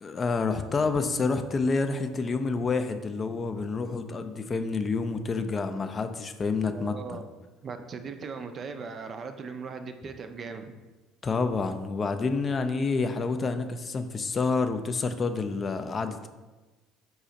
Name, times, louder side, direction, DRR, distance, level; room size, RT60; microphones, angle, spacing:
voice 1, 0.0-7.0 11.2-16.3, left 4 dB, 35° left, 8 dB, 0.3 m, -28 dB
voice 2, 6.7-7.2 7.6-10.7, right 5 dB, 45° right, 7 dB, 0.4 m, -38 dB
4.1 x 2.3 x 3.9 m, 1.2 s
hypercardioid pair, 65°, 0 cm